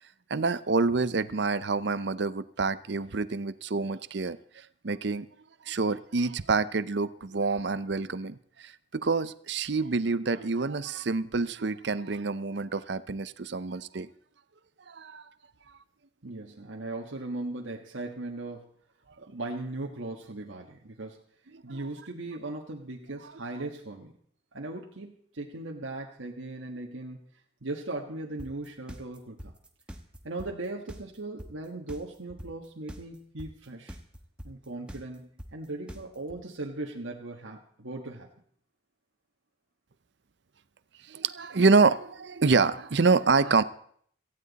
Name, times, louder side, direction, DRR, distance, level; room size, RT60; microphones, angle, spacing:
voice 1, 0.3-5.3 5.7-14.1 14.9-15.3 41.1-43.6, right 4 dB, 60° right, 15 dB, 0.6 m, -27 dB
voice 2, 16.2-18.7 19.2-21.2 21.6-24.1 24.5-27.2 27.6-29.5 30.2-34.0 34.4-38.3, right 2 dB, 80° right, 0 dB, 1.5 m, -38 dB
sound 1, 28.4-36.4, equal, 5° right, 1.2 m, -43 dB
18.0 x 15.0 x 4.1 m, 0.63 s
head